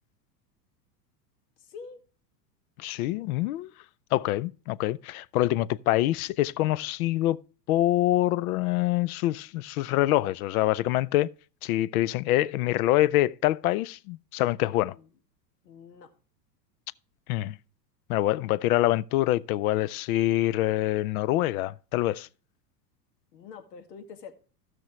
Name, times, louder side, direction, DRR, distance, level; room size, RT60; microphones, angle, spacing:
voice 1, 1.6-2.0 14.8-15.1 15.6-16.1 23.3-24.3, left 5 dB, 85° left, 2.0 m, -45 dB
voice 2, 2.8-3.7 4.1-7.4 7.7-11.3 11.6-15.0 17.3-17.6 18.1-22.3, left 15 dB, 65° left, 0.6 m, -25 dB
15.5 x 6.2 x 3.1 m
hypercardioid pair, 110°, 48 cm